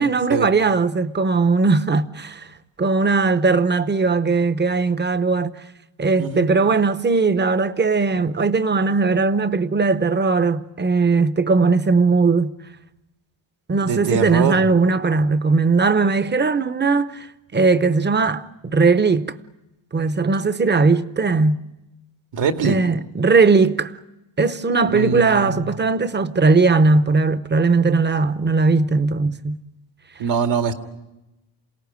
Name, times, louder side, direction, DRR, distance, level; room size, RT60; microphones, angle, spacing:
voice 1, 0.0-2.5 2.8-5.5 6.0-12.5 13.7-17.3 17.5-19.3 19.9-21.6 22.6-23.9 24.4-29.6, right 4 dB, 25° right, 0.9 m, -18 dB
voice 2, 13.8-14.6 22.3-22.8 24.9-25.7 30.2-30.7, right 6 dB, 70° right, 2.3 m, -23 dB
28.0 x 18.5 x 9.3 m
cardioid pair, 120°, 46 cm